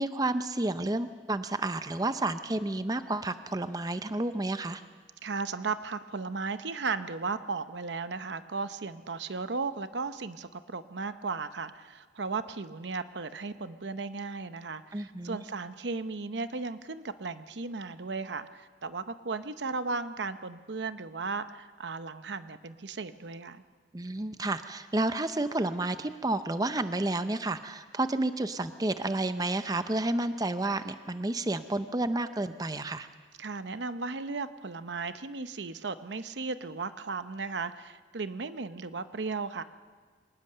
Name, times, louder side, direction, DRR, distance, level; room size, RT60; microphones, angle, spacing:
voice 1, 0.0-4.8 14.9-15.4 23.9-33.1, right 2 dB, 20° right, 10 dB, 0.6 m, -30 dB
voice 2, 5.2-23.6 33.4-39.6, right 4 dB, 70° right, 11 dB, 0.8 m, -35 dB
24.0 x 19.0 x 6.7 m, 1.5 s
head